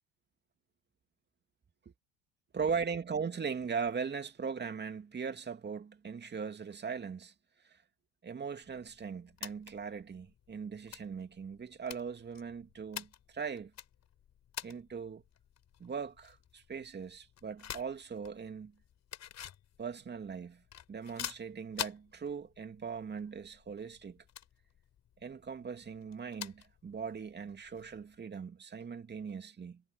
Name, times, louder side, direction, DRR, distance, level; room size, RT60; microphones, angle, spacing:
voice 1, 2.5-7.3 7.6-7.8 8.2-13.7 14.6-15.2 15.8-18.7 19.8-20.6 20.9-24.2 25.2-29.8, right 6 dB, 30° right, 2.7 m, -39 dB
sound 1, 8.6-28.2, left 10 dB, 45° left, 7.5 m, -49 dB
hypercardioid pair, 70°, 37 cm